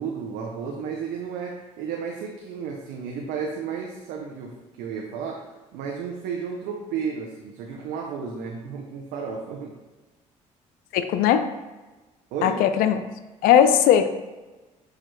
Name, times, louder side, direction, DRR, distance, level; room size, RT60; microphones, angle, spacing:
voice 1, 0.0-9.7 12.3-12.6, right 6 dB, 80° right, -1 dB, 0.6 m, -33 dB
voice 2, 10.9-11.5 12.4-13.0 13.4-14.1, left 9 dB, 75° left, 10 dB, 0.4 m, -18 dB
6.3 x 2.4 x 3.1 m, 1.2 s
supercardioid pair, 65°, 15 cm